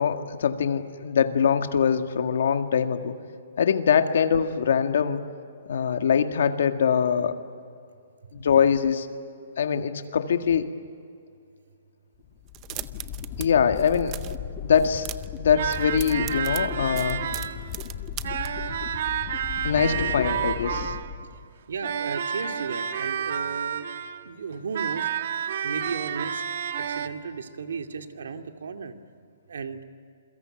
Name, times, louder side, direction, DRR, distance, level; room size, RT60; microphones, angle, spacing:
voice 1, 0.0-3.1 3.6-5.2 5.7-7.4 8.3-9.1 9.6-10.7 13.4-14.3 14.6-15.1 15.4-17.3 19.6-21.0, left 7 dB, 60° left, 7 dB, 1.9 m, -23 dB
sound 1, 12.2-21.7, left 9 dB, 25° left, 1.3 m, -37 dB
sound 2, 12.5-13.5 13.7-14.4 14.8-15.4 15.7-18.5, right 16 dB, 20° right, 0.6 m, -38 dB
sound 3, 15.5-17.7 18.2-21.2 21.8-24.2 24.7-27.1, right 8 dB, 50° right, 1.3 m, -30 dB
voice 2, 21.7-23.9 24.3-25.1 25.6-26.4 26.8-28.9 29.5-29.8, right 5 dB, 80° right, 6 dB, 2.3 m, -35 dB
28.0 x 23.0 x 9.0 m, 2.3 s
hypercardioid pair, 175°, 0 cm